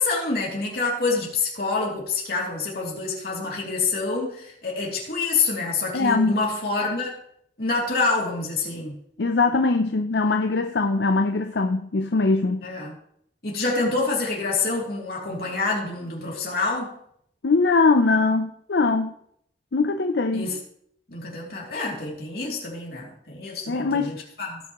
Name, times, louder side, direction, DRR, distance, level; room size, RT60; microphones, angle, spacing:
voice 1, 0.0-7.1 7.6-9.0 12.6-12.9 13.4-16.9 20.3-20.6 21.1-24.6, left 3 dB, 55° left, 2.9 m, -27 dB
voice 2, 5.9-6.4 9.2-12.7 17.4-19.1 19.7-20.5 23.7-24.2, left 3 dB, 75° left, 0.6 m, -21 dB
17.0 x 5.9 x 3.1 m
head